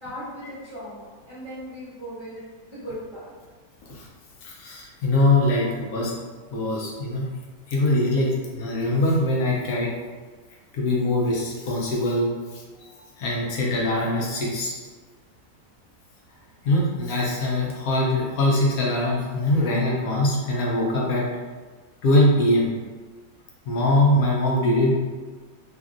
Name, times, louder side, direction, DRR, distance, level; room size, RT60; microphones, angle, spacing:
voice 1, 0.0-2.4 2.7-3.3, equal, 25° right, -12 dB, 0.7 m, -37 dB
voice 2, 4.4-6.1 6.5-7.3 7.7-9.9 10.7-12.3 12.9-14.8 16.6-21.3 22.0-22.7 23.7-24.9, left 1 dB, 75° left, -3 dB, 1.1 m, -22 dB
2.8 x 2.5 x 2.4 m, 1.4 s
omnidirectional pair, 1.6 m